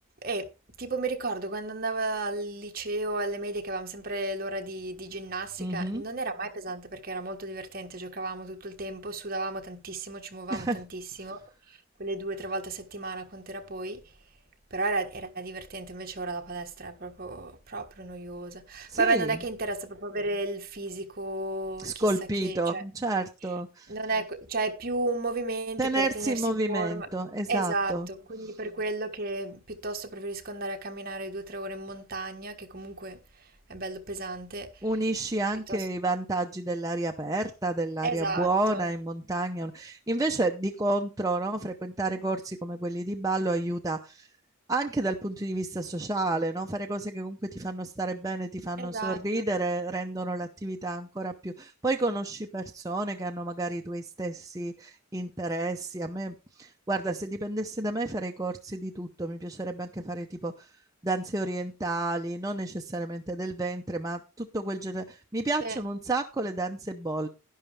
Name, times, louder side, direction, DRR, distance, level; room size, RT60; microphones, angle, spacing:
voice 1, 0.8-11.4 12.0-14.0 14.7-22.1 22.4-22.8 23.9-27.1 27.5-33.2 33.7-34.7 35.7-35.9 38.0-38.9 48.8-49.4 65.6-65.8, right 2 dB, 45° right, 1.4 m, -33 dB
voice 2, 5.6-6.0 10.5-10.8 11.2-11.3 18.9-19.4 21.8-23.9 25.8-28.1 28.4-28.6 34.8-44.3 44.7-60.7 61.0-67.3, right 2 dB, 15° right, 0.7 m, -30 dB
11.0 x 11.0 x 3.4 m
head